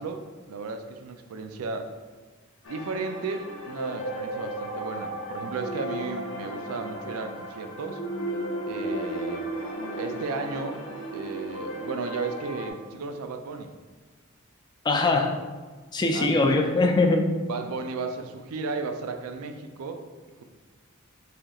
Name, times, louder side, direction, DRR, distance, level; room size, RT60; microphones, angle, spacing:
voice 1, 0.0-1.9 2.7-8.0 8.7-9.5 10.0-10.8 11.1-13.7 16.1-16.5 17.5-20.0, right 4 dB, 90° right, 7 dB, 0.4 m, -34 dB
sound 1, 2.6-12.7, right 1 dB, 65° left, 0.6 m, -34 dB
voice 2, 14.8-15.3 15.9-17.3, left 2 dB, 20° left, 3 dB, 0.3 m, -22 dB
4.9 x 2.9 x 2.4 m, 1.4 s
head